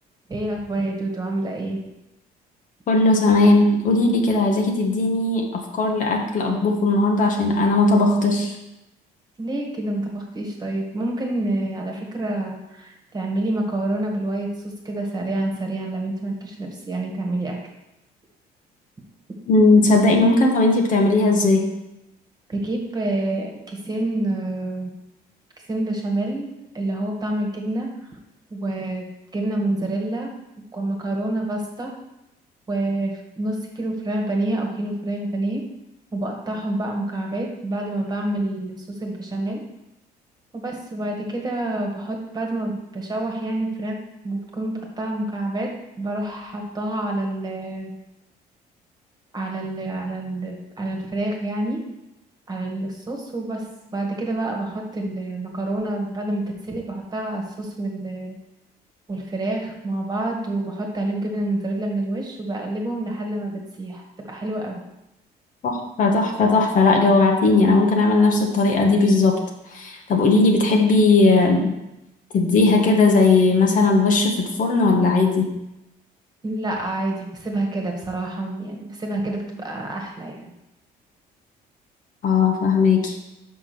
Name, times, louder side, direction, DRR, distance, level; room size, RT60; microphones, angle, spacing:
voice 1, 0.3-1.8 9.4-14.5 14.8-17.6 22.5-24.9 25.7-26.5 26.7-27.9 28.5-29.0 29.3-30.3 30.7-31.9 32.7-35.6 36.1-39.6 40.5-45.7 46.0-47.9 49.3-51.8 52.5-53.7 53.9-58.4 59.1-64.8 76.4-80.4, right 1 dB, 25° right, 1 dB, 1.7 m, -27 dB
voice 2, 2.9-8.5 19.5-21.7 65.6-65.7 66.0-69.4 69.7-71.7 72.3-75.5 82.2-83.1, left 3 dB, 50° left, 2 dB, 1.3 m, -17 dB
5.8 x 5.0 x 6.1 m, 0.91 s
cardioid pair, 110°, 17 cm